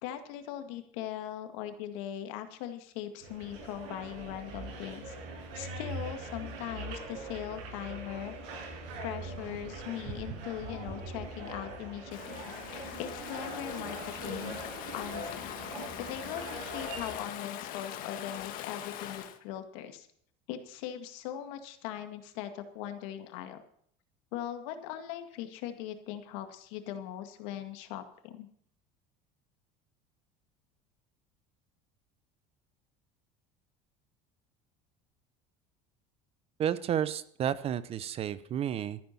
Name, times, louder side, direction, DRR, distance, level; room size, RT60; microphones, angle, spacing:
voice 1, 0.0-5.2 5.5-8.3 9.0-14.6 14.9-15.6 16.1-20.1 20.5-23.6 24.3-28.5, left 11 dB, 80° left, 7 dB, 2.0 m, -40 dB
sound 1, 3.2-17.1, right 2 dB, 80° right, 7.1 m, -42 dB
Stream / Ocean, 12.1-19.4, left 11 dB, 60° left, 1.6 m, -42 dB
voice 2, 36.6-39.0, right 9 dB, 35° right, 16 dB, 0.8 m, -31 dB
14.0 x 10.5 x 5.9 m, 0.63 s
cardioid pair, 135°, 16 cm